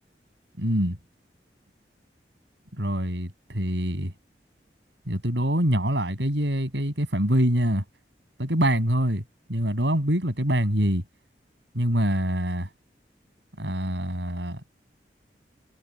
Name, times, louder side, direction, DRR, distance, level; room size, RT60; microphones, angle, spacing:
voice 1, 0.6-1.0 2.8-4.1 5.1-7.8 8.4-9.2 9.5-11.0 11.7-12.7 13.6-14.6, equal, 85° right, 7.5 m, -25 dB
head